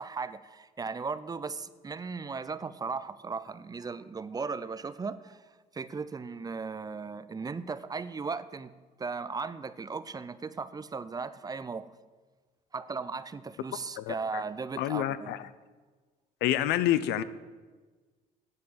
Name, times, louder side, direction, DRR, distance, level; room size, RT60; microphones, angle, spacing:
voice 1, 0.0-5.4 5.7-8.7 9.0-11.9 12.7-15.4, right 4 dB, 20° right, 15 dB, 0.5 m, -37 dB
voice 2, 14.0-14.4 14.8-15.5 16.4-17.2, left 12 dB, 85° left, 15 dB, 0.7 m, -28 dB
10.5 x 6.8 x 8.7 m, 1.3 s
cardioid pair, 110°, 17 cm